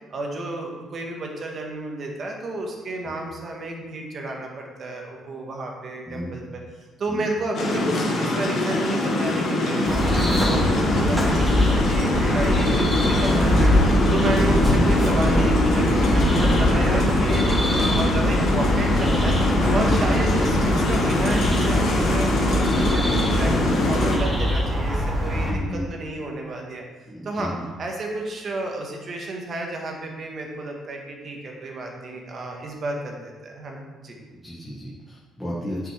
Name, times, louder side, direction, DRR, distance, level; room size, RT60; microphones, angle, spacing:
voice 1, 0.1-6.6 7.0-19.3 19.7-26.8 27.2-27.5 27.8-34.2, right 2 dB, 40° right, 1 dB, 1.4 m, -31 dB
sound 1, 7.5-24.2, left 1 dB, 60° left, 1.8 m, -23 dB
sound 2, 9.9-25.5, equal, 15° right, 2.3 m, -23 dB
voice 2, 25.4-25.9 27.1-27.7 34.4-35.9, equal, 5° left, -7 dB, 1.4 m, -32 dB
9.1 x 6.1 x 3.4 m, 1.3 s
cardioid pair, 145°, 0 cm